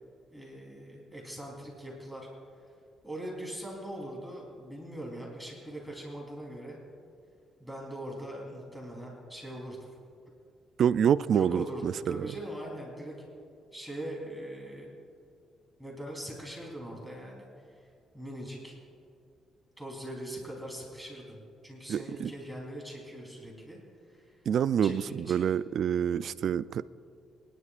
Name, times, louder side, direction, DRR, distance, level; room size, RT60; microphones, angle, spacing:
voice 1, 0.3-2.3 3.0-6.8 7.6-9.9 11.3-13.3 13.7-15.0 15.8-17.5 17.8-17.9 18.1-18.7 19.8-23.8 24.1-24.4 24.8-25.0 25.3-25.5, right 1 dB, 5° right, -3 dB, 3.6 m, -41 dB
voice 2, 10.8-12.3 21.9-22.3 24.5-26.9, right 8 dB, 65° right, 17 dB, 0.3 m, -27 dB
25.5 x 11.0 x 2.5 m, 2.4 s
cardioid pair, 80°, 0 cm